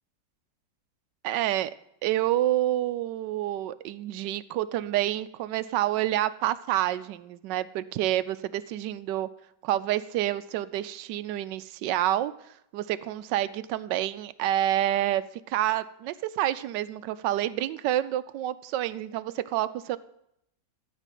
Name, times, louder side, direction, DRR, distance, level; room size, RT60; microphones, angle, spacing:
voice 1, 1.2-1.7 2.0-9.3 9.6-12.3 12.7-20.0, right 13 dB, 80° right, 14 dB, 1.2 m, -28 dB
13.5 x 5.0 x 9.2 m, 0.76 s
omnidirectional pair, 2.0 m